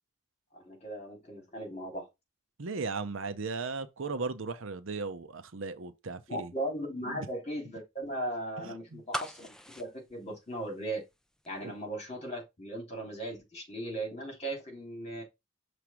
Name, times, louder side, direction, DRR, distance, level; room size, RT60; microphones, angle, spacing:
voice 1, 0.5-2.1 6.3-11.0 11.5-15.2, right 1 dB, 30° left, 3.2 m, -38 dB
voice 2, 2.6-6.5 7.1-7.3 8.6-9.0 11.6-11.7, right 4 dB, 70° right, 0.7 m, -37 dB
sound 1, 9.1-11.1 11.4-11.5, equal, 5° left, 0.4 m, -39 dB
6.1 x 3.3 x 5.7 m
head